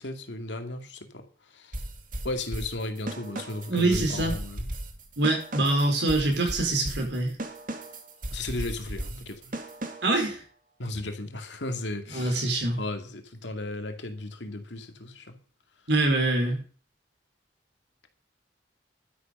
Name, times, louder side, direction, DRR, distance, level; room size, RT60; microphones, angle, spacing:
voice 1, 0.0-1.8 2.2-4.7 8.3-9.6 10.8-12.5 12.8-15.4, left 2 dB, 80° left, 2.2 m, -35 dB
sound 1, 1.7-10.2, right 1 dB, 50° right, 2.2 m, -37 dB
voice 2, 3.7-4.3 5.2-7.3 10.0-10.4 12.1-12.8 15.9-16.6, right 2 dB, 75° right, 4.8 m, -24 dB
12.0 x 10.5 x 5.5 m
head